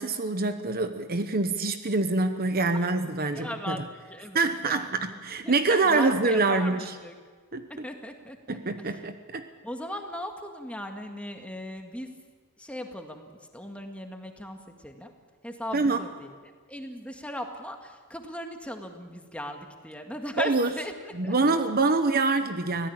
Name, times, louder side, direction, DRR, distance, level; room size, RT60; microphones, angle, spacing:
voice 1, 0.0-3.8 4.3-6.8 7.5-7.8 8.5-9.4 15.7-16.0 20.4-20.7 21.2-22.9, right 3 dB, 45° right, 9 dB, 1.0 m, -25 dB
voice 2, 3.2-4.9 5.4-7.2 7.7-8.4 8.8-9.0 9.6-12.1 12.6-15.1 15.4-20.9 21.2-21.6, left 1 dB, 5° left, 4 dB, 1.9 m, -38 dB
24.0 x 17.0 x 8.8 m, 1.5 s
head